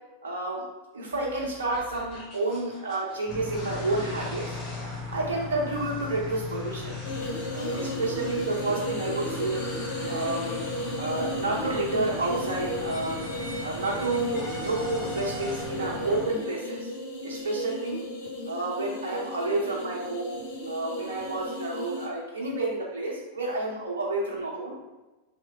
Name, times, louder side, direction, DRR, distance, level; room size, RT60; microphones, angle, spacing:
voice 1, 0.2-0.6 0.9-4.6 5.1-6.9 7.5-9.6 10.1-10.5 11.0-13.2 13.6-16.9 17.2-18.0 18.5-20.3 20.7-24.8, right 2 dB, 70° right, -3 dB, 0.8 m, -30 dB
sound 1, 1.1-15.6, equal, 20° left, 1.4 m, -44 dB
sound 2, 3.3-16.2, left 4 dB, 5° left, 0.9 m, -38 dB
sound 3, 7.0-22.1, equal, 50° left, 0.7 m, -35 dB
3.0 x 2.0 x 3.6 m, 1.1 s
figure-of-eight pair, 90°, 0 cm